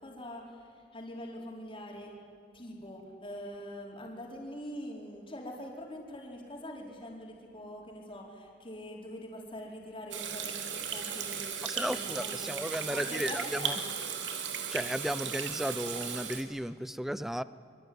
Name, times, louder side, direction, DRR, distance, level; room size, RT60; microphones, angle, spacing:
voice 1, 0.0-2.2 2.5-12.6 12.9-13.7, equal, 30° left, -1 dB, 4.7 m, -44 dB
Water tap faucet / Sink (filling or washing), 10.1-16.4, right 7 dB, 85° right, 2.9 m, -36 dB
voice 2, 11.6-13.8 14.7-17.4, equal, ahead, 15 dB, 0.7 m, -34 dB
25.5 x 24.0 x 9.7 m, 2.3 s
head